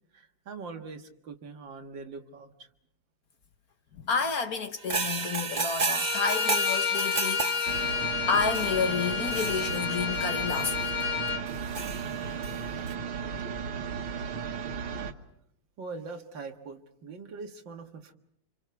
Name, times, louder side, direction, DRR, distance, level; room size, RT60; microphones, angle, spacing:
voice 1, 0.1-2.7 13.6-14.0 15.8-18.1, right 4 dB, 65° right, 2.3 m, -42 dB
voice 2, 4.0-7.4 8.3-11.1, left 5 dB, 55° left, 1.4 m, -30 dB
sound 1, 4.8-10.2 10.6-10.8 11.5-12.6 12.9-13.0, right 4 dB, 40° right, 0.6 m, -33 dB
Bowed string instrument, 5.9-11.4, left 7 dB, 80° left, 2.1 m, -30 dB
sound 2, 7.7-15.1, right 6 dB, 90° right, 2.1 m, -35 dB
30.0 x 26.5 x 4.7 m
omnidirectional pair, 2.2 m